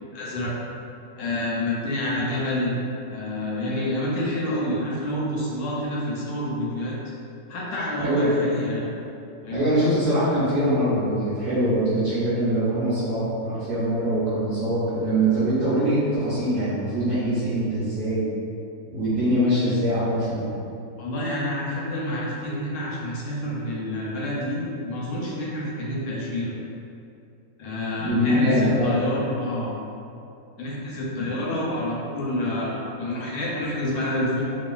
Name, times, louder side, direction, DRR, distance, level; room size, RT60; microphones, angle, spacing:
voice 1, 0.1-0.5 1.2-2.7 3.1-7.0 7.5-8.9 9.4-9.7 21.0-26.5 27.6-29.7 30.6-34.4, left 1 dB, 75° left, -5 dB, 1.1 m, -28 dB
voice 2, 8.0-8.4 9.5-18.3 18.9-20.6 28.0-29.0, right 1 dB, 60° right, -13 dB, 0.8 m, -23 dB
3.0 x 2.3 x 2.3 m, 2.6 s
omnidirectional pair, 1.9 m